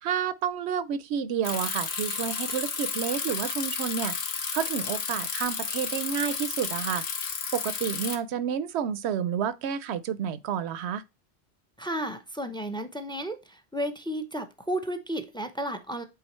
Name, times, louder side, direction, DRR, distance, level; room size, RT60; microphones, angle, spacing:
voice 1, 0.0-4.2 4.5-7.1 7.5-11.0, right 8 dB, 70° right, 0.8 m, -30 dB
Bicycle, 1.4-8.2, left 5 dB, 60° left, 1.1 m, -32 dB
voice 2, 11.8-16.0, right 1 dB, 5° left, 0.4 m, -33 dB
8.5 x 3.8 x 3.0 m
omnidirectional pair, 1.2 m